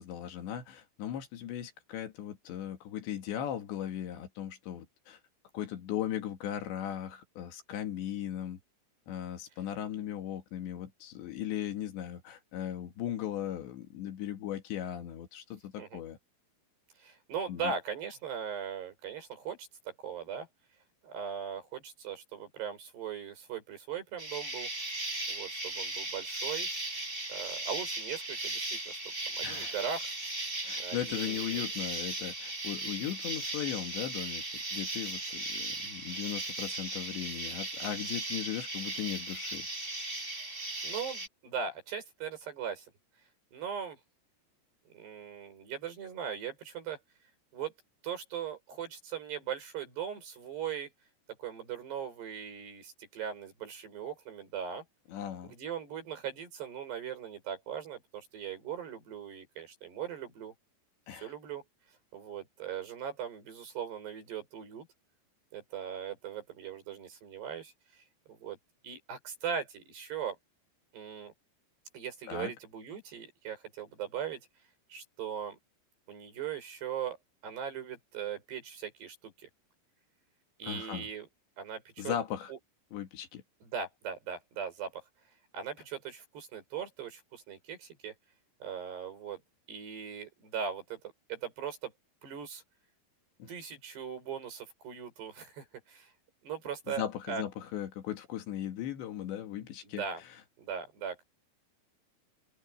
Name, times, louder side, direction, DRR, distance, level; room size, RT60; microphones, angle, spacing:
voice 1, 0.0-5.2 5.5-8.6 9.1-16.2 17.5-17.7 29.4-29.7 30.6-34.4 34.7-39.7 55.1-55.5 61.1-61.3 72.3-72.5 80.6-81.1 82.0-82.5 82.9-83.4 93.4-93.5 97.0-100.0, left 11 dB, 75° left, 4.2 m, -37 dB
voice 2, 17.0-20.5 21.0-24.7 25.3-26.7 27.3-29.0 29.3-30.1 30.8-31.6 40.8-42.9 43.5-44.0 44.9-47.0 47.5-47.7 48.0-50.9 51.4-54.8 55.4-60.5 61.1-61.6 62.1-64.9 65.5-68.0 68.3-68.6 68.8-70.4 70.9-71.3 71.9-74.4 74.9-75.6 76.1-77.2 77.4-79.5 80.6-81.3 81.6-82.1 82.5-82.6 83.6-85.1 85.5-88.1 88.6-89.4 89.7-91.0 91.3-91.9 92.2-92.6 93.5-96.1 96.4-97.4 99.8-100.2 100.6-101.2, right 7 dB, 65° right, 8.0 m, -39 dB
Insect, 24.2-41.3, right 2 dB, 15° right, 4.3 m, -37 dB
open air
omnidirectional pair, 5.2 m